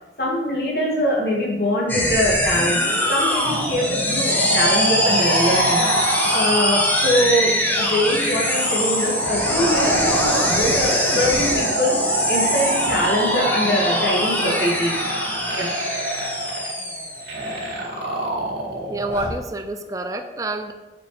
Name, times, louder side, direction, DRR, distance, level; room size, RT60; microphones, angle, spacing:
voice 1, 0.2-14.9 15.5-15.7, left 1 dB, 60° left, -3 dB, 1.6 m, -23 dB
sound 1, 1.9-17.7, left 1 dB, 10° left, 0.7 m, -23 dB
sound 2, 3.4-19.4, right 1 dB, 75° right, 2.1 m, -26 dB
voice 2, 18.9-20.7, right 2 dB, 20° right, 7 dB, 0.4 m, -28 dB
7.0 x 4.8 x 3.1 m, 1.1 s
head